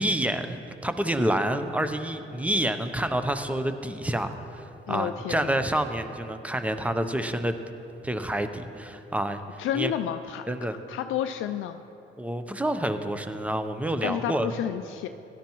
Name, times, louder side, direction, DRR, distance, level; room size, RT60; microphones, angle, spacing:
voice 1, 0.0-7.6 8.0-9.4 9.7-9.9 10.5-10.8 12.2-14.5, right 1 dB, 5° right, 8 dB, 0.7 m, -28 dB
voice 2, 4.9-5.7 9.6-10.5 10.9-11.8 14.0-15.1, left 10 dB, 80° left, 8 dB, 0.4 m, -30 dB
17.0 x 11.5 x 3.1 m, 2.9 s
cardioid pair, 90°, 20 cm